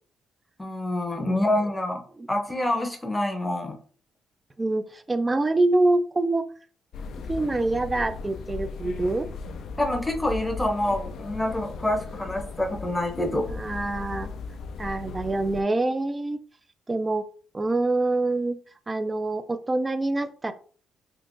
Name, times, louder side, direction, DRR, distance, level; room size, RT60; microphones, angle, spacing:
voice 1, 0.6-3.8 9.8-13.5, left 1 dB, 10° left, 3 dB, 0.7 m, -27 dB
voice 2, 4.6-6.5 7.3-9.3 13.5-14.3 14.8-16.4 16.9-17.2 17.5-18.6 18.9-20.5, right 2 dB, 20° right, 11 dB, 0.4 m, -25 dB
sound 1, 6.9-15.6, left 4 dB, 70° left, 0.3 m, -37 dB
3.7 x 2.4 x 2.5 m, 0.43 s
cardioid pair, 90°, 0 cm